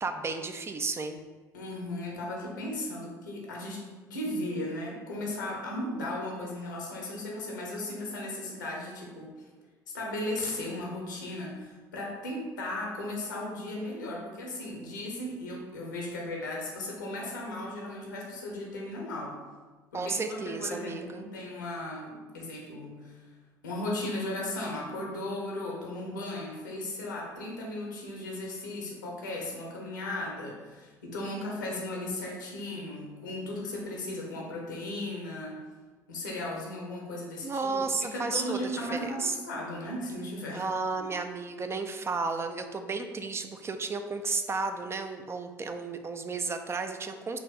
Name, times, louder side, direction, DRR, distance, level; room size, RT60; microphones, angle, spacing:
voice 1, 0.0-1.2 19.9-21.2 37.4-39.4 40.5-47.4, right 4 dB, 25° right, 7 dB, 0.4 m, -33 dB
voice 2, 1.5-9.3 9.9-19.4 19.9-23.2 23.6-35.6 36.1-40.6, left 1 dB, 80° left, -1 dB, 0.9 m, -36 dB
4.2 x 2.7 x 4.1 m, 1.3 s
figure-of-eight pair, 60°, 10 cm